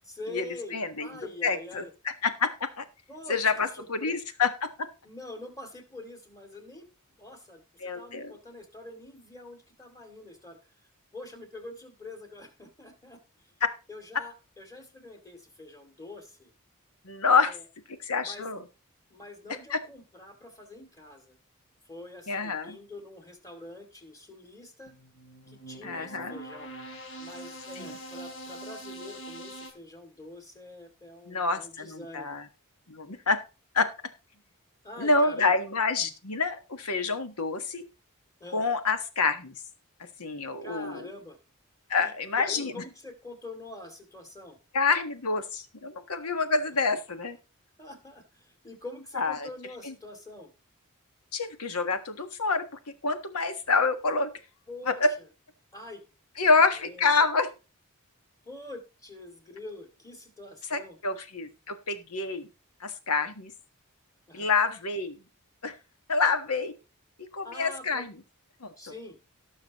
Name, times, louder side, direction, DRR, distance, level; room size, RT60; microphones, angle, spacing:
voice 1, 0.0-0.7 1.0-1.9 3.1-3.4 3.7-4.2 5.0-6.9 7.2-10.6 11.1-13.5 13.9-16.5 17.3-17.6 18.2-18.4 19.1-21.4 21.9-24.9 25.5-26.7 27.2-32.4 34.8-35.5 38.4-38.6 40.6-41.4 42.0-44.6 46.9-47.0 47.8-50.5 54.7-55.1 55.7-56.0 56.4-57.1 58.4-61.0 64.3-64.5 67.4-68.0 68.8-69.2, left 2 dB, 15° left, 5 dB, 2.5 m, -45 dB
voice 2, 0.7-1.1 1.4-2.8 3.3-4.9 7.8-8.3 17.0-17.6 18.0-18.6 19.7-19.8 22.3-22.8 25.8-26.4 27.8-27.9 31.3-32.5 32.9-33.4 33.7-33.9 35.0-37.8 38.5-39.5 40.2-41.1 41.9-42.8 44.7-47.4 49.1-49.5 49.8-49.9 51.3-54.3 54.8-55.1 56.4-57.5 60.7-62.5 62.8-63.5 64.3-65.2 65.6-65.8 66.1-66.7 67.2-68.1 68.6-68.7, left 4 dB, 80° left, 9 dB, 1.4 m, -27 dB
sound 1, 24.9-29.7, right 1 dB, 60° left, 3.3 m, -43 dB
18.5 x 6.3 x 3.0 m, 0.31 s
head